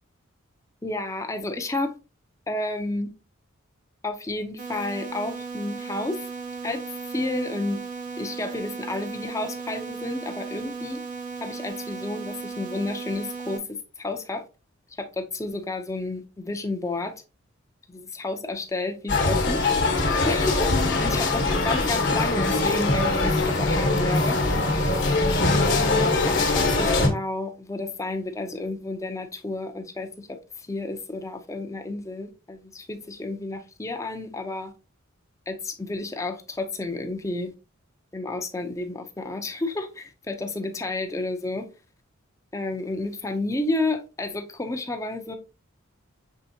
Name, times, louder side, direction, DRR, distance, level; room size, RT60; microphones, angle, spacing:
voice 1, 0.8-1.9 2.5-3.1 4.0-6.3 6.6-6.8 7.1-7.8 8.2-11.0 11.4-14.4 14.9-17.2 17.9-24.4 24.7-25.0 25.4-34.7 35.5-37.5 38.1-41.7 42.5-45.4, left 2 dB, 15° left, 0.5 m, -31 dB
sound 1, 4.6-13.6, right 4 dB, 40° right, 0.7 m, -36 dB
sound 2, 19.1-27.1, left 2 dB, 55° left, 1.0 m, -22 dB
5.6 x 3.5 x 2.7 m
head